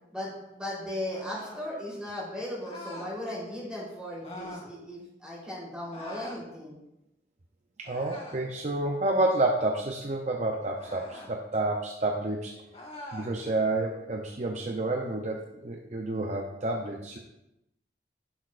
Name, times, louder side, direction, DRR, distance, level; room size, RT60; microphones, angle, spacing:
voice 1, 0.1-6.7, left 1 dB, 5° right, -7 dB, 3.5 m, -37 dB
sound 1, 1.1-1.7 2.6-3.2 4.2-4.7 5.9-6.4 7.8-8.5 10.8-11.3 12.7-13.3, left 1 dB, 35° left, 1.4 m, -43 dB
voice 2, 7.8-12.5 13.1-17.2, right 2 dB, 40° right, 1 dB, 0.6 m, -29 dB
15.0 x 6.3 x 2.5 m, 0.91 s
head